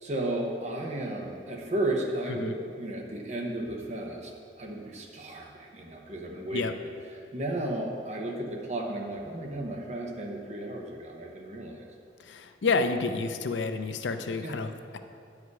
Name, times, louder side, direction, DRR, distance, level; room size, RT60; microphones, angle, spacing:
voice 1, 0.0-4.3 4.6-6.7 7.3-11.8 14.4-14.6, right 1 dB, 40° right, 0 dB, 1.0 m, -34 dB
voice 2, 12.2-15.0, left 4 dB, 90° left, 8 dB, 0.5 m, -30 dB
9.7 x 4.9 x 4.8 m, 2.4 s
head